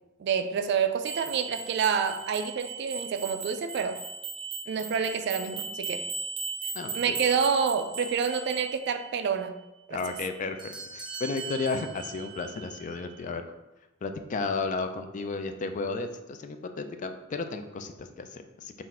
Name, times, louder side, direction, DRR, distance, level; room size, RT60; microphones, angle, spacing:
voice 1, 0.2-4.0 4.7-6.0 6.9-9.6 9.9-10.0, right 6 dB, 60° right, 9 dB, 0.3 m, -28 dB
sound 1, 1.0-9.3 10.0-13.3, right 4 dB, 25° right, 0.7 m, -38 dB
voice 2, 6.7-7.2 9.9-13.5 14.0-18.8, left 3 dB, 40° left, 8 dB, 0.3 m, -33 dB
3.9 x 2.5 x 4.2 m, 1.0 s
head